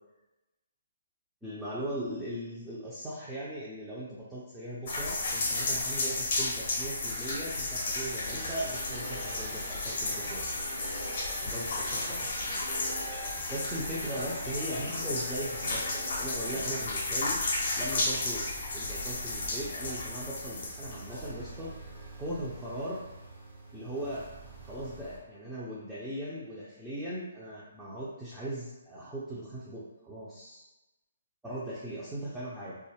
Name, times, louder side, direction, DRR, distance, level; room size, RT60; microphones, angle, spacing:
voice 1, 1.4-10.4 11.4-12.3 13.5-17.4 17.8-18.4 18.7-21.7 22.2-23.0 23.7-24.2 24.6-30.6 31.4-32.8, right 1 dB, 5° right, -10 dB, 0.5 m, -39 dB
sound 1, 4.9-21.3, left 2 dB, 50° left, 0.7 m, -33 dB
sound 2, 8.3-25.2, right 1 dB, 50° right, 0.8 m, -44 dB
2.3 x 2.0 x 3.3 m, 1.0 s
figure-of-eight pair, 135°, 0 cm